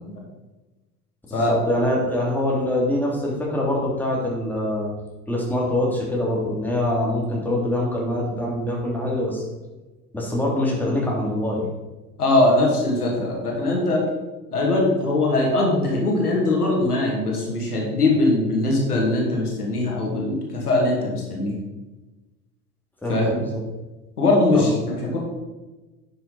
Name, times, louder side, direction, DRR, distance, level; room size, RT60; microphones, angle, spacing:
voice 1, 1.3-4.9 5.3-9.4 10.1-11.7 23.0-23.6 24.5-24.7, left 1 dB, 5° left, -4 dB, 3.0 m, -24 dB
voice 2, 12.2-14.0 14.5-21.6 23.1-23.4 24.2-25.2, left 2 dB, 80° left, -2 dB, 2.4 m, -21 dB
10.0 x 6.8 x 4.2 m, 1.1 s
figure-of-eight pair, 75°, 45 cm